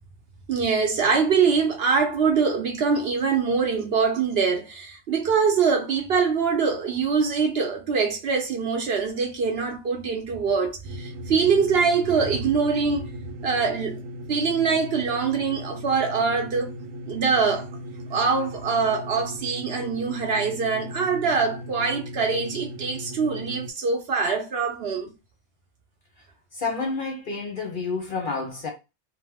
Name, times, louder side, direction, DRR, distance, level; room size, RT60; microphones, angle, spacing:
voice 1, 0.5-13.1 13.4-14.0 14.3-16.7 17.1-17.7 18.1-25.1, right 5 dB, 60° right, 0.8 m, -23 dB
sound 1, 10.8-23.7, equal, 85° right, 1.0 m, -38 dB
voice 2, 26.5-28.7, left 4 dB, 55° left, 0.7 m, -29 dB
2.8 x 2.0 x 3.4 m
omnidirectional pair, 1.3 m